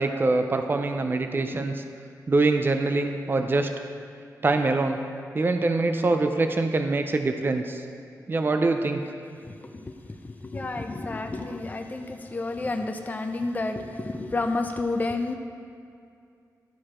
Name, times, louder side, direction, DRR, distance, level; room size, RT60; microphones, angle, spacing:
voice 1, 0.0-1.8 2.3-3.7 4.4-5.0 5.3-7.8 8.3-9.0, right 3 dB, 35° right, 6 dB, 0.5 m, -24 dB
voice 2, 9.4-15.3, left 2 dB, 25° left, 4 dB, 0.5 m, -30 dB
11.5 x 4.8 x 4.3 m, 2.4 s
wide cardioid pair, 85°, 7 cm